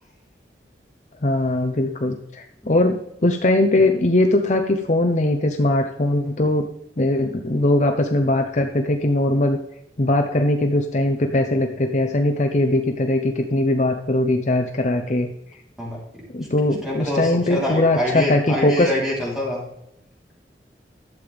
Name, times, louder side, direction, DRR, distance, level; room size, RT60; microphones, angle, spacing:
voice 1, 1.2-6.6 7.0-9.6 10.0-15.3 16.3-18.9, left 1 dB, 40° left, 5 dB, 0.7 m, -20 dB
voice 2, 15.8-16.2 16.8-19.6, left 1 dB, 5° right, -6 dB, 3.7 m, -26 dB
12.0 x 7.7 x 3.5 m, 0.80 s
head